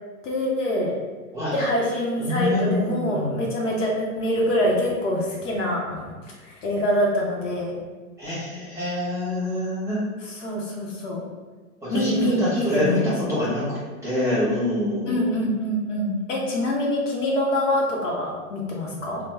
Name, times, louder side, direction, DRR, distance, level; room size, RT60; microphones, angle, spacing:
voice 1, 0.2-0.9 1.5-7.8 10.2-11.2 11.9-13.5 15.1-19.2, left 1 dB, 55° left, -2 dB, 0.8 m, -25 dB
voice 2, 2.2-3.4 8.2-10.0 11.8-13.8 14.0-15.3, left 1 dB, 5° right, -9 dB, 1.1 m, -26 dB
3.1 x 2.1 x 3.1 m, 1.3 s
figure-of-eight pair, 105°, 44 cm